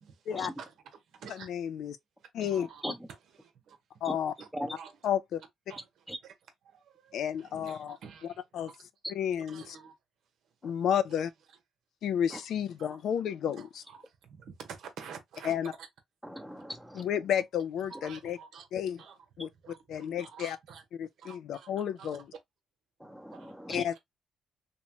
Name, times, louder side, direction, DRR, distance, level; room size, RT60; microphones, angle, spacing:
voice 1, 0.6-1.5 2.4-2.8 3.4-3.8 4.4-4.9 5.7-6.3 6.6-8.8 9.4-9.9 11.1-11.2 12.3-12.4 12.8-13.0 13.6-15.9 17.9-18.7 19.0-19.2 19.6-20.8 21.2-22.2 23.3-23.5, right 6 dB, 75° right, 0.9 m, -49 dB
voice 2, 1.5-2.0 2.3-2.7 4.0-4.3 5.0-5.4 7.1-8.0 8.5-8.7 9.1-9.8 10.6-11.3 12.0-13.8 15.5-15.7 17.0-18.4 18.7-19.0 19.4-19.5 19.9-20.6 21.0-22.3 23.7-24.0, left 9 dB, 75° left, 0.4 m, -31 dB
voice 3, 16.2-17.0 23.0-24.0, equal, ahead, 0.8 m, -39 dB
2.9 x 2.2 x 2.9 m
cardioid pair, 90°, 0 cm